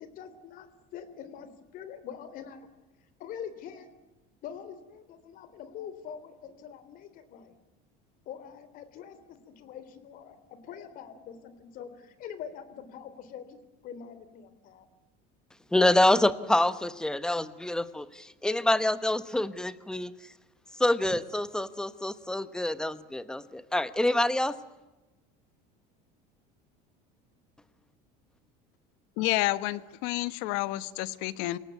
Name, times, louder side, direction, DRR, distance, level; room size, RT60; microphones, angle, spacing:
voice 1, 0.0-2.7 3.2-3.9 4.4-7.5 8.2-14.9, left 8 dB, 50° left, 13 dB, 3.4 m, -44 dB
voice 2, 15.7-20.1 20.8-24.6, left 1 dB, 5° left, 13 dB, 1.0 m, -26 dB
voice 3, 29.2-31.6, left 17 dB, 75° left, 15 dB, 1.3 m, -29 dB
28.0 x 18.0 x 9.5 m, 1.1 s
cardioid pair, 150°, 19 cm